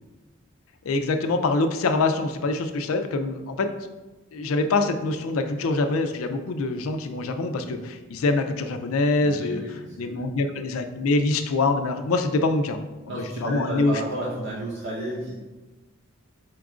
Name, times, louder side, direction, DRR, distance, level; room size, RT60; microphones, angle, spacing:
voice 1, 0.9-3.7 4.3-9.7 10.0-12.8 13.2-14.0, left 3 dB, 85° left, 7 dB, 0.4 m, -24 dB
voice 2, 9.2-10.2 13.1-15.3, right 1 dB, 55° right, -6 dB, 0.7 m, -32 dB
4.4 x 2.4 x 4.8 m, 1.2 s
head